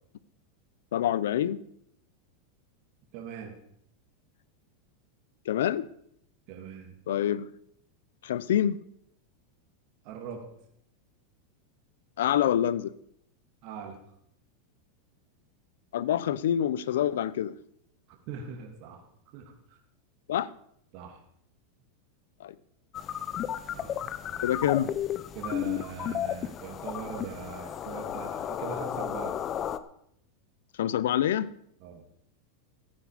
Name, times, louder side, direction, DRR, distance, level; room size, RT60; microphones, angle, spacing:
voice 1, 0.9-1.6 5.5-5.9 7.1-7.5 8.2-8.8 12.2-12.9 15.9-17.6 20.3-20.5 22.4-22.6 24.4-24.9 30.8-31.5, left 10 dB, 80° left, 0.7 m, -26 dB
voice 2, 3.1-3.5 6.5-6.9 10.0-10.4 13.6-14.0 18.3-19.0 19.3-19.8 20.9-21.2 23.7-24.0 24.3-24.6 25.3-29.4 31.8-32.0, right 6 dB, 55° right, 2.8 m, -41 dB
sound 1, 22.9-29.8, left 10 dB, 35° left, 0.8 m, -33 dB
15.0 x 9.5 x 5.1 m
hypercardioid pair, 120°, 0 cm